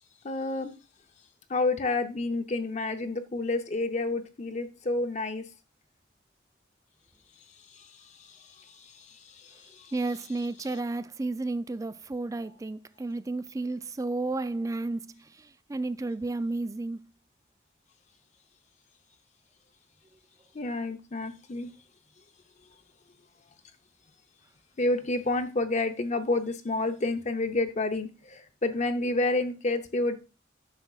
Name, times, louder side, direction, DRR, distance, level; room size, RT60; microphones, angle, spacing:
voice 1, 0.2-0.7 1.5-5.4 7.7-9.9 20.5-21.7 24.8-30.2, left 2 dB, 40° left, 0.7 m, -30 dB
voice 2, 9.9-17.1, right 2 dB, 20° right, 0.3 m, -32 dB
9.8 x 6.7 x 2.4 m
head